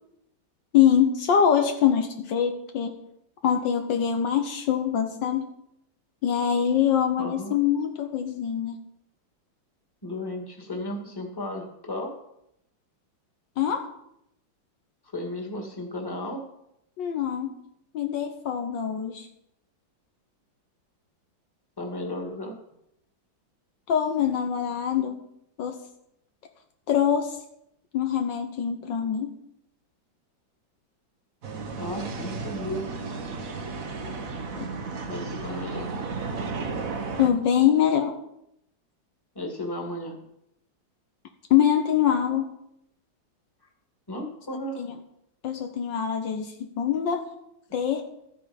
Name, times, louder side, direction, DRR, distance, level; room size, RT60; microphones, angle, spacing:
voice 1, 0.7-3.0 3.4-5.5 6.2-8.8 13.6-13.9 17.0-17.6 17.9-19.3 23.9-25.2 25.6-25.8 26.9-27.4 27.9-29.4 34.6-34.8 37.2-38.2 41.5-42.5 44.8-44.9 45.4-47.3 47.7-48.0, left 9 dB, 70° left, 5 dB, 1.6 m, -24 dB
voice 2, 7.2-7.5 10.0-12.1 15.0-16.4 21.8-22.5 31.8-32.8 35.1-35.9 39.4-40.2 44.1-44.8, left 1 dB, 10° left, 2 dB, 2.0 m, -34 dB
sound 1, 31.4-37.3, right 4 dB, 50° right, 1.3 m, -33 dB
13.0 x 9.1 x 5.2 m, 0.78 s
omnidirectional pair, 2.1 m